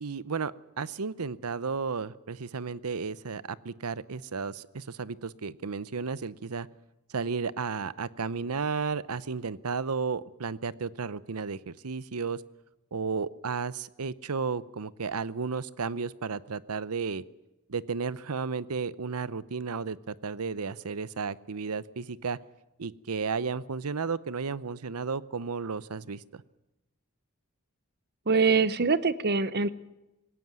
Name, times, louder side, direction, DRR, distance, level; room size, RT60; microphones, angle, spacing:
voice 1, 0.0-6.7 7.1-12.4 12.9-17.2 17.7-22.4 22.8-26.4, right 5 dB, 90° right, 18 dB, 0.8 m, -33 dB
voice 2, 28.3-29.7, right 4 dB, 50° right, 16 dB, 0.9 m, -24 dB
20.0 x 17.5 x 9.4 m, 0.98 s
head